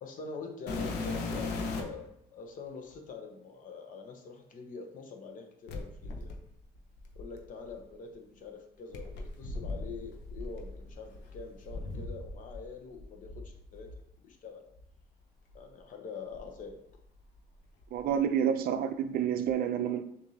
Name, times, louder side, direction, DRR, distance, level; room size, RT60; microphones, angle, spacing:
voice 1, 0.0-6.3 7.2-13.9 14.2-14.6 15.5-16.8, left 4 dB, 50° left, 4 dB, 0.8 m, -45 dB
sound 1, 0.7-2.1 2.9-3.0 5.7-7.8 8.9-12.7 12.9-14.0 14.8-14.9 15.5-15.6 16.3-17.4 17.6-18.2 19.5-19.6, left 3 dB, 85° left, 0.7 m, -39 dB
voice 2, 17.9-20.0, right 8 dB, 65° right, 9 dB, 0.5 m, -29 dB
6.4 x 2.7 x 2.8 m, 0.73 s
cardioid pair, 110°, 17 cm